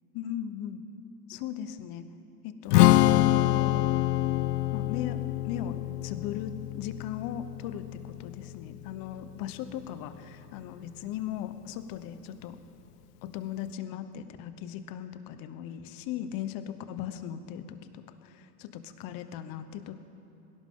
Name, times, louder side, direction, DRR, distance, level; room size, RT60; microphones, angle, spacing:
voice 1, 0.1-0.8 1.3-2.0 2.4-3.9 4.7-12.6 13.2-20.0, left 10 dB, 45° left, 11 dB, 1.1 m, -38 dB
Strum, 2.7-9.0, left 15 dB, 75° left, 0.6 m, -26 dB
21.0 x 17.5 x 3.8 m, 3.0 s
hypercardioid pair, 105°, 48 cm